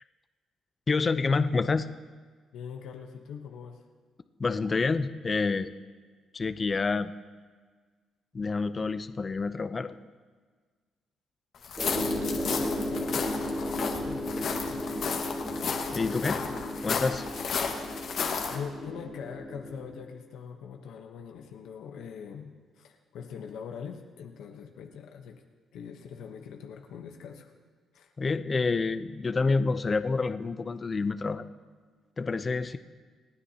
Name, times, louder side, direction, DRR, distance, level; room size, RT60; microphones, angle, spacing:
voice 1, 0.9-1.9 4.4-5.7 6.3-7.1 8.3-10.0 15.9-16.4 16.8-17.2 28.2-31.4 32.2-32.8, left 4 dB, 35° left, 12 dB, 0.6 m, -28 dB
voice 2, 2.5-3.8 12.3-13.2 14.0-14.8 16.0-17.1 18.5-25.4 25.7-27.5 27.9-28.1, left 7 dB, 80° left, 3 dB, 1.0 m, -43 dB
sound 1, 11.6-18.6, left 5 dB, 60° left, 1.6 m, -33 dB
sound 2, 11.8-19.9, left 1 dB, 15° right, 3.2 m, -34 dB
28.5 x 9.7 x 2.9 m, 1.5 s
cardioid pair, 90°, 0 cm